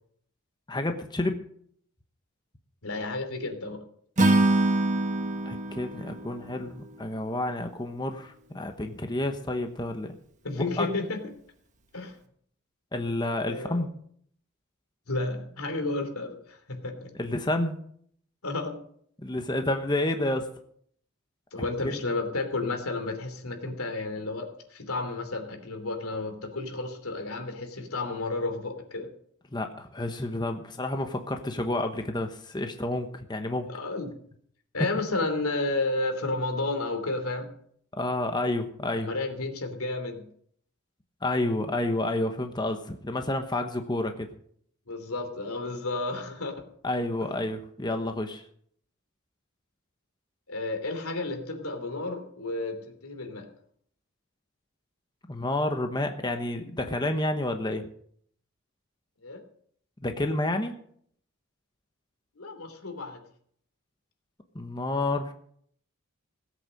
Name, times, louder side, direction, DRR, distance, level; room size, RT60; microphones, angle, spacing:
voice 1, 0.7-1.4 5.5-10.1 10.5-10.9 12.9-13.9 17.1-17.8 19.2-20.5 21.8-22.0 29.5-33.7 38.0-39.1 41.2-44.3 46.8-48.4 55.3-57.8 60.0-60.7 64.5-65.3, left 1 dB, 20° left, 6 dB, 1.0 m, -29 dB
voice 2, 2.8-3.8 10.4-11.2 11.9-12.2 13.4-13.8 15.1-17.1 18.4-18.8 21.5-29.1 33.7-34.1 34.7-37.5 39.0-40.2 44.9-46.6 47.2-47.4 50.5-53.5 59.2-59.4 62.4-63.2, left 2 dB, 85° left, 6 dB, 2.9 m, -32 dB
Acoustic guitar / Strum, 4.2-7.4, right 2 dB, 35° right, 1.5 m, -25 dB
17.5 x 8.2 x 6.5 m, 0.63 s
head